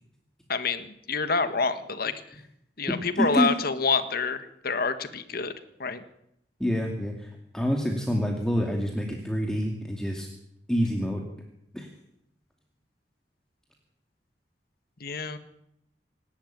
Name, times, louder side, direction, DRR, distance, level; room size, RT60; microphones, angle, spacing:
voice 1, 0.5-2.1 2.8-5.5 5.8-6.0 15.0-15.4, left 4 dB, 60° left, 10 dB, 1.6 m, -27 dB
voice 2, 3.2-3.5 6.6-10.3 10.7-11.2 11.7-11.9, equal, 5° left, 1 dB, 2.4 m, -27 dB
26.5 x 11.5 x 9.3 m, 0.79 s
head